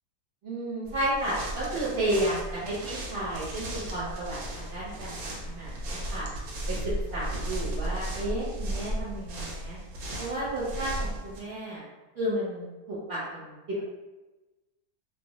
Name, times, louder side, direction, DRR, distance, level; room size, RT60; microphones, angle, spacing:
voice 1, 0.4-6.3 6.7-6.8 7.1-9.8 10.2-11.8 12.1-13.8, right 1 dB, 45° right, -10 dB, 1.0 m, -32 dB
sound 1, 0.9-11.4, right 1 dB, 80° right, 1.1 m, -35 dB
2.5 x 2.2 x 2.9 m, 1.1 s
omnidirectional pair, 1.5 m